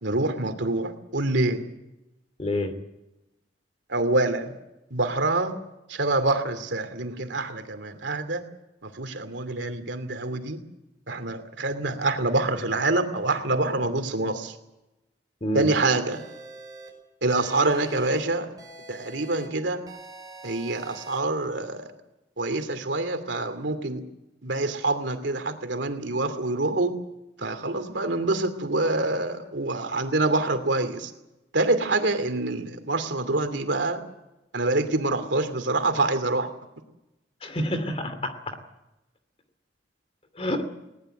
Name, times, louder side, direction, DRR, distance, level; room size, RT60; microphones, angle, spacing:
voice 1, 0.0-1.6 3.9-4.5 4.9-5.5 5.9-8.4 8.8-10.6 11.1-14.5 15.5-16.2 17.2-18.5 18.9-19.8 20.4-21.9 22.4-24.0 24.4-26.9 27.4-31.1 31.5-34.0 34.5-36.5, right 2 dB, 85° right, 8 dB, 2.6 m, -26 dB
voice 2, 2.4-2.7 15.4-15.7 37.4-38.6 40.4-40.7, left 1 dB, 35° left, 9 dB, 2.6 m, -28 dB
sound 1, 16.1-16.9 17.3-18.2 18.6-19.5 19.9-21.2, right 2 dB, 20° right, 5.5 m, -44 dB
20.5 x 19.0 x 7.8 m, 0.96 s
head